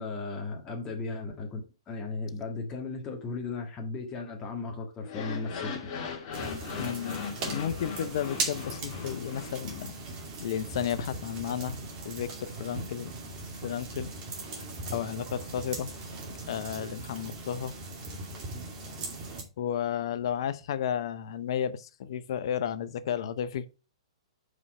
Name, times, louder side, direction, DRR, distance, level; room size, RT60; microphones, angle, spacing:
voice 1, 0.0-1.6 1.9-5.8, left 3 dB, 20° left, 1.6 m, -36 dB
sound 1, 5.0-10.2, left 6 dB, 40° left, 1.8 m, -39 dB
sound 2, 6.3-19.4, right 3 dB, 30° right, 2.4 m, -39 dB
voice 2, 6.8-9.9 10.4-13.1 13.6-14.1 14.9-15.9 16.5-17.7 19.6-23.7, left 9 dB, 60° left, 0.7 m, -33 dB
5.5 x 5.1 x 4.8 m
hypercardioid pair, 125°, 3 cm